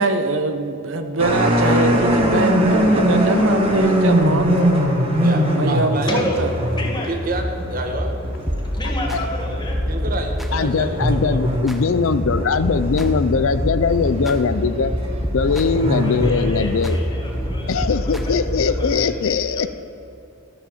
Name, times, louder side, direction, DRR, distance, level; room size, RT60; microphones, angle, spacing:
voice 1, 0.0-4.5 5.6-6.5, right 2 dB, 65° right, 8 dB, 0.8 m, -23 dB
sound 1, 1.2-19.0, equal, 25° right, 1.5 m, -22 dB
voice 2, 5.2-6.3 7.1-8.1 9.9-11.4, right 2 dB, 40° right, 4 dB, 1.2 m, -28 dB
voice 3, 6.1-6.4 6.7-7.1 8.7-9.8 15.8-19.7, left 2 dB, 20° left, 0 dB, 1.7 m, -31 dB
sound 2, 8.5-9.2 9.6-10.7 11.0-11.8 12.2-14.4 14.8-15.9 16.2-17.0 17.4-18.8, equal, ahead, 0.7 m, -28 dB
voice 4, 10.5-14.9 15.3-17.0 17.7-19.7, left 5 dB, 70° left, 13 dB, 0.5 m, -20 dB
13.0 x 7.1 x 7.2 m, 2.7 s
head